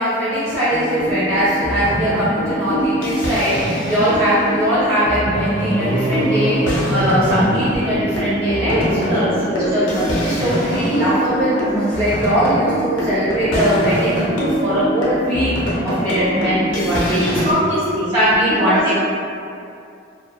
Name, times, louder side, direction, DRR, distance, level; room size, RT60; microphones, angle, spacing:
voice 1, 0.0-9.2 9.6-15.5 15.8-17.4 18.1-18.9, equal, 30° right, -13 dB, 0.6 m, -20 dB
sound 1, 0.7-17.5, equal, 80° left, 0.5 m, -23 dB
sound 2, 5.3-8.7, right 1 dB, 75° right, 0.4 m, -25 dB
voice 2, 9.0-9.9 17.1-18.1 18.4-18.9, equal, 25° left, -12 dB, 0.7 m, -22 dB
2.7 x 2.0 x 2.3 m, 2.5 s
head